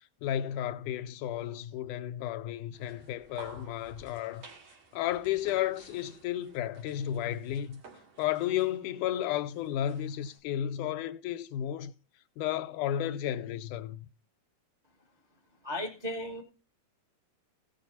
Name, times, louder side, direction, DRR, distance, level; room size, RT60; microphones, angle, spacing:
voice 1, 0.2-4.4 4.9-7.8 8.2-11.9 12.4-14.1, left 11 dB, 80° left, 2.2 m, -33 dB
sound 1, 2.7-10.4, right 4 dB, 55° right, 3.1 m, -54 dB
voice 2, 15.6-16.4, left 1 dB, 75° right, 0.4 m, -35 dB
16.0 x 6.9 x 4.1 m
omnidirectional pair, 3.7 m